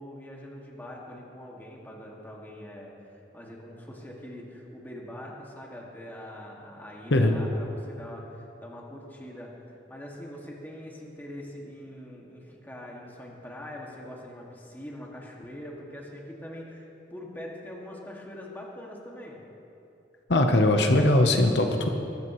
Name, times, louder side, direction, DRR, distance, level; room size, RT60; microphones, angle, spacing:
voice 1, 0.0-9.5 9.9-19.4, left 1 dB, 10° left, -3 dB, 2.1 m, -43 dB
voice 2, 20.3-21.9, left 1 dB, 75° left, 4 dB, 1.0 m, -20 dB
21.5 x 14.5 x 3.2 m, 2.9 s
head